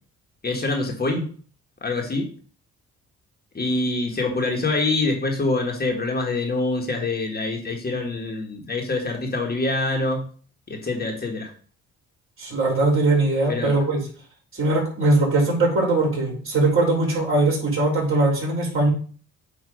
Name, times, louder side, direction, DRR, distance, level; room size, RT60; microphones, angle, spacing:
voice 1, 0.4-1.3 1.8-2.3 3.5-10.3 10.7-11.5 13.5-13.7, left 2 dB, 30° left, 1 dB, 1.6 m, -25 dB
voice 2, 12.4-14.0 14.5-18.9, right 2 dB, 45° right, -2 dB, 3.7 m, -20 dB
8.6 x 3.0 x 5.0 m, 0.43 s
cardioid pair, 90°, 30 cm